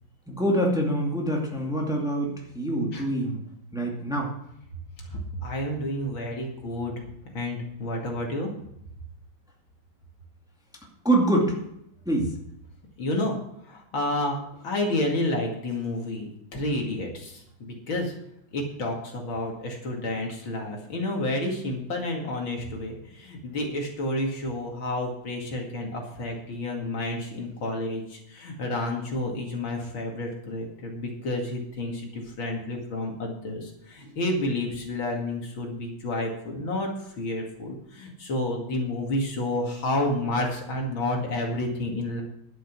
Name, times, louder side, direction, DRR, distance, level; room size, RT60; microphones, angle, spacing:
voice 1, 0.3-3.4 3.7-4.3 11.0-11.6 12.1-12.3, right 1 dB, ahead, -1 dB, 2.3 m, -25 dB
voice 2, 5.1-6.9 7.3-8.5 13.0-13.4 13.7-18.1 18.5-36.9 37.2-42.2, left 1 dB, 65° left, 1 dB, 3.0 m, -30 dB
11.0 x 9.1 x 6.0 m, 0.77 s
omnidirectional pair, 2.3 m